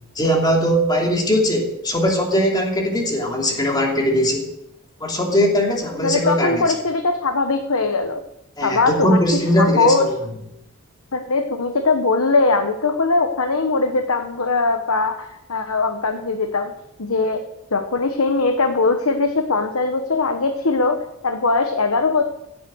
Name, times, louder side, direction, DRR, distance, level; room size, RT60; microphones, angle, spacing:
voice 1, 0.1-4.5 5.0-6.7 8.6-10.2, equal, 20° left, 0 dB, 2.9 m, -20 dB
voice 2, 6.0-8.2 8.6-9.2 9.6-10.1 11.1-16.7 17.0-17.4 17.7-21.0 21.2-22.3, left 3 dB, 75° left, 6 dB, 1.1 m, -20 dB
16.5 x 8.4 x 6.3 m, 0.83 s
head